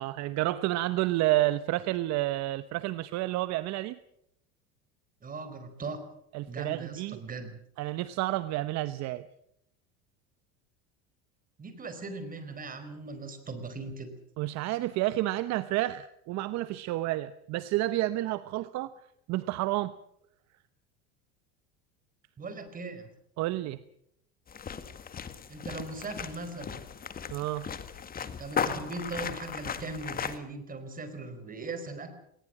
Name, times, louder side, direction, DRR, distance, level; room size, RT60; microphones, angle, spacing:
voice 1, 0.0-4.0 6.3-7.2 7.8-9.3 14.4-18.9 19.3-19.9 23.4-23.8 27.3-27.7, right 16 dB, 55° right, 14 dB, 0.9 m, -30 dB
voice 2, 5.2-6.0 6.5-7.6 11.6-14.1 22.4-23.1 25.5-26.8 28.4-32.1, right 3 dB, 25° right, 9 dB, 4.5 m, -39 dB
sound 1, 24.5-30.4, left 7 dB, 25° left, 1.9 m, -36 dB
20.0 x 19.5 x 7.7 m, 0.75 s
supercardioid pair, 115°, 33 cm